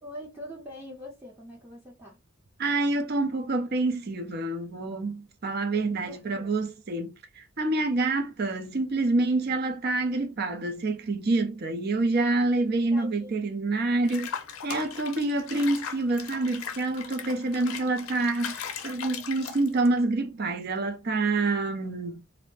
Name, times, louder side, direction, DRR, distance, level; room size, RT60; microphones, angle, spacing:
voice 1, 0.0-2.2 6.1-6.5 12.9-13.3, left 1 dB, 10° right, 0.7 m, -43 dB
voice 2, 2.6-7.1 7.4-14.3 14.6-22.2, right 2 dB, 50° right, 0.5 m, -27 dB
Water / Bathtub (filling or washing), 14.1-20.0, left 7 dB, 80° left, 0.5 m, -38 dB
2.5 x 2.0 x 3.1 m
head